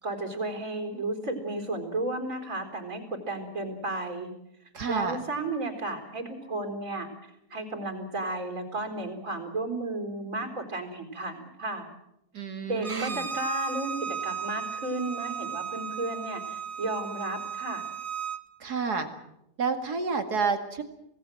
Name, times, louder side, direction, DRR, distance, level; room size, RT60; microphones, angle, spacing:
voice 1, 0.0-4.3 4.9-7.1 7.5-11.9 12.6-17.8, right 2 dB, 55° right, 4 dB, 4.4 m, -33 dB
voice 2, 4.7-5.2 12.3-13.3 18.6-19.1 19.6-20.8, right 5 dB, 85° right, 7 dB, 2.7 m, -29 dB
Bowed string instrument, 12.8-18.4, right 6 dB, 25° right, 0.9 m, -35 dB
26.5 x 18.0 x 7.7 m, 0.82 s
omnidirectional pair, 1.6 m